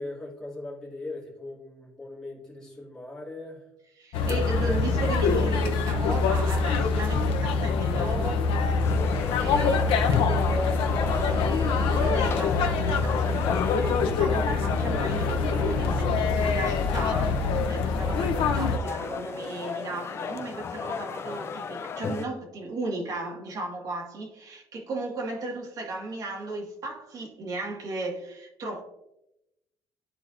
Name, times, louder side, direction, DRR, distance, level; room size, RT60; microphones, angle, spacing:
voice 1, 0.0-3.7, left 2 dB, 10° left, -6 dB, 2.4 m, -40 dB
voice 2, 3.9-8.4 9.1-28.8, right 2 dB, 40° right, -1 dB, 1.9 m, -35 dB
sound 1, 4.1-18.8, left 4 dB, 75° left, 0.8 m, -25 dB
sound 2, 8.8-22.3, left 5 dB, 30° left, 0.4 m, -36 dB
13.0 x 4.5 x 2.6 m, 0.88 s
cardioid pair, 180°, 9 cm